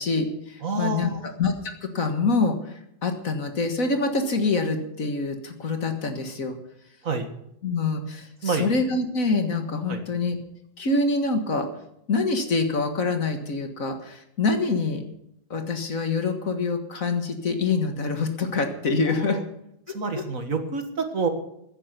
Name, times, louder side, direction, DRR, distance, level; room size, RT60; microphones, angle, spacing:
voice 1, 0.0-6.6 7.6-10.4 10.8-11.7 12.1-15.0 15.5-19.4 20.2-20.3, left 3 dB, 60° left, 6 dB, 2.0 m, -25 dB
voice 2, 0.6-1.3 7.0-7.3 8.4-8.7 9.9-10.0 19.3-19.4 19.9-21.3, right 4 dB, 55° right, 6 dB, 2.0 m, -27 dB
15.0 x 10.0 x 6.8 m, 0.78 s
omnidirectional pair, 1.7 m